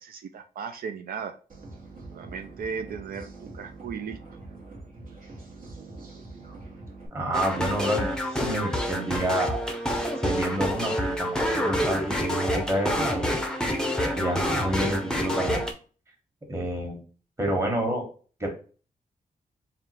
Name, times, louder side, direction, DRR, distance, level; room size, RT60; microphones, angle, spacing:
voice 1, 0.0-1.4 2.1-4.2, right 6 dB, 85° right, 7 dB, 0.4 m, -36 dB
sound 1, 1.5-7.1, right 2 dB, 70° right, 1.2 m, -44 dB
voice 2, 7.1-9.5 10.2-13.3 14.2-15.6 16.5-17.0 17.4-18.0 18.4-18.5, right 1 dB, 20° right, 0 dB, 1.2 m, -29 dB
sound 2, 7.3-15.7, equal, 5° left, 0.6 m, -27 dB
3.5 x 2.4 x 4.2 m, 0.39 s
wide cardioid pair, 145°, 15 cm